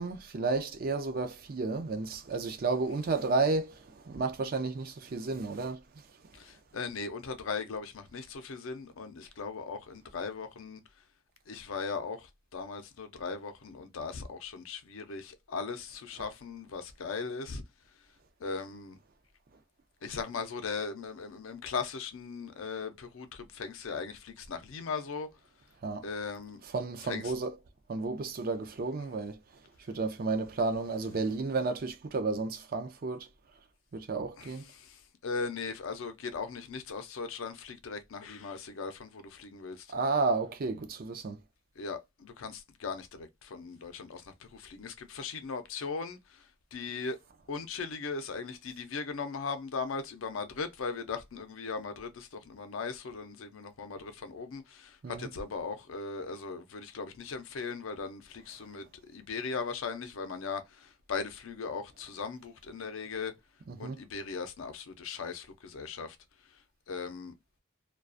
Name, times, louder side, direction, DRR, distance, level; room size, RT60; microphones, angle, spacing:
voice 1, 0.0-5.8 25.8-26.1 26.7-27.6 27.9-29.4 29.9-33.3 33.9-34.7 39.9-41.4 55.0-55.3 63.7-64.0, right 3 dB, 45° right, 0.4 m, -32 dB
voice 2, 6.4-10.8 11.5-17.6 18.4-19.0 20.0-25.3 26.0-26.6 27.0-27.3 34.4-39.9 41.8-47.2 47.5-63.3 63.8-66.2 66.9-67.3, left 4 dB, 75° left, 0.5 m, -38 dB
2.4 x 2.2 x 2.4 m
head